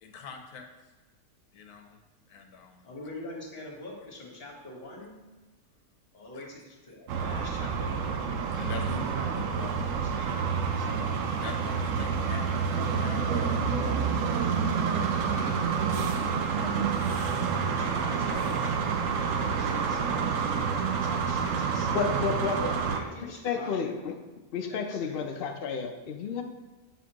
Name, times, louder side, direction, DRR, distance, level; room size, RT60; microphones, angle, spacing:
voice 1, 0.0-0.7 1.5-2.0 2.3-2.8 6.3-6.5 8.2-9.2 11.4-15.3 15.6-16.8, left 4 dB, 85° left, 4 dB, 1.2 m, -45 dB
voice 2, 2.8-5.2 6.1-8.2 8.7-11.0 16.4-18.7 19.0-20.3 20.8-22.2 22.7-23.9 24.7-25.2, left 2 dB, 40° left, -1 dB, 1.5 m, -45 dB
sound 1, 7.1-23.0, right 6 dB, 65° right, 0.9 m, -28 dB
sound 2, 13.5-20.4, right 4 dB, 45° right, 2.5 m, -44 dB
voice 3, 21.9-22.7 23.2-24.1 24.5-26.4, left 5 dB, 60° left, 4 dB, 0.6 m, -31 dB
7.2 x 6.1 x 2.9 m, 1.2 s
omnidirectional pair, 1.6 m